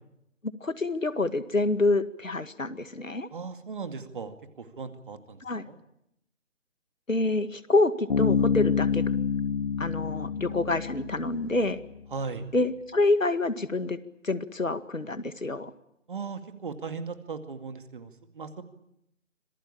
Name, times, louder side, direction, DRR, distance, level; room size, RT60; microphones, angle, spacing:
voice 1, 0.6-3.3 5.4-5.7 7.1-9.0 9.8-11.8 12.5-14.0 14.2-15.7, left 2 dB, 85° left, 12 dB, 2.1 m, -27 dB
voice 2, 3.3-5.8 12.1-12.5 16.1-18.6, right 5 dB, 40° right, 9 dB, 2.3 m, -38 dB
Bass guitar, 8.1-11.7, left 6 dB, 50° left, 3.3 m, -27 dB
26.0 x 19.0 x 8.7 m, 0.80 s
figure-of-eight pair, 155°, 38 cm